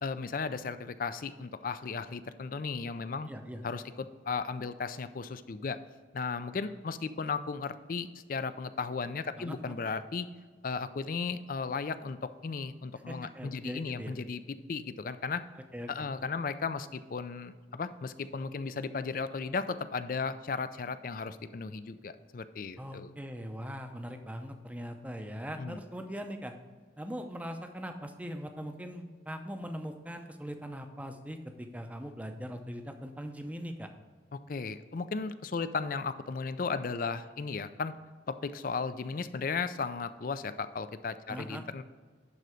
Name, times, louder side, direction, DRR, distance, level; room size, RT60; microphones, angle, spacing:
voice 1, 0.0-3.3 3.6-5.8 6.1-10.3 10.6-14.4 14.7-15.4 15.9-23.1 25.6-25.8 34.5-37.9 38.3-41.8, left 4 dB, 50° left, 13 dB, 0.4 m, -35 dB
voice 2, 3.3-3.6 9.4-9.8 13.1-14.1 15.7-15.9 22.8-26.5 27.0-33.9 41.3-41.6, equal, 10° right, 6 dB, 0.6 m, -41 dB
11.0 x 4.0 x 4.9 m, 1.5 s
head